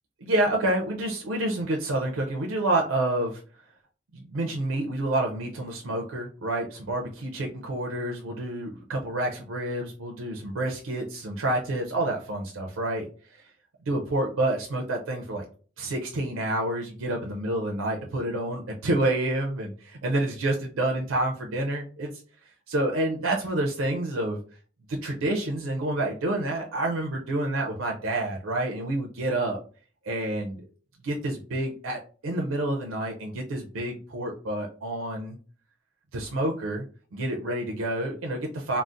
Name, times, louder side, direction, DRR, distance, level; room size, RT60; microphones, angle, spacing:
voice 1, 0.2-3.4 4.1-13.4 13.8-15.4 15.8-22.2 22.7-24.4 24.9-29.6 30.0-30.7 31.0-35.4 36.1-36.8 37.1-38.8, right 1 dB, 90° right, 1 dB, 0.5 m, -28 dB
3.8 x 2.0 x 2.5 m, 0.39 s
head